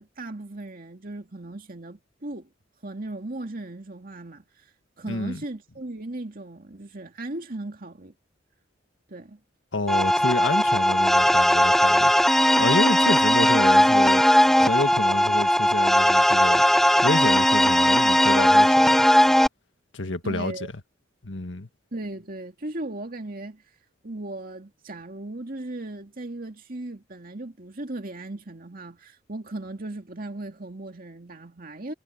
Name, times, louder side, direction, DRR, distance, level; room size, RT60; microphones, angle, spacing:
voice 1, 0.0-2.5 2.8-4.7 5.0-8.1 9.1-9.4 20.2-20.7 21.9-23.6 24.0-31.9, right 2 dB, 50° right, 2.3 m, -37 dB
voice 2, 5.1-5.4 9.7-12.1 12.5-14.2 14.6-16.6 17.0-19.1 19.9-20.5 21.2-21.7, left 2 dB, 75° left, 1.8 m, -29 dB
sound 1, 9.9-19.5, equal, ahead, 0.3 m, -18 dB
head